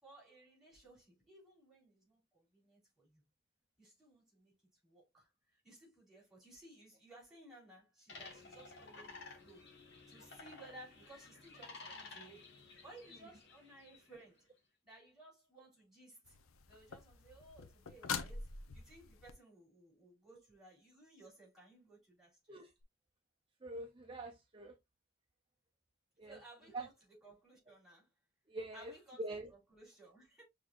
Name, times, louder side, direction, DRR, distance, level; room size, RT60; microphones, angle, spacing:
voice 1, 0.0-3.2 3.8-4.5 4.8-14.5 14.8-16.4 16.7-22.6 26.3-26.9 27.2-28.1 28.7-29.2 29.5-30.4, right 2 dB, ahead, 3.5 m, -59 dB
sound 1, 8.1-14.2, left 3 dB, 55° left, 1.4 m, -54 dB
sound 2, 16.2-19.3 22.8-22.9, left 5 dB, 85° left, 0.6 m, -45 dB
voice 2, 23.6-24.8 26.2-26.3 26.7-26.9 28.5-28.9 29.2-29.5, right 2 dB, 25° right, 0.5 m, -44 dB
6.0 x 3.5 x 2.4 m
head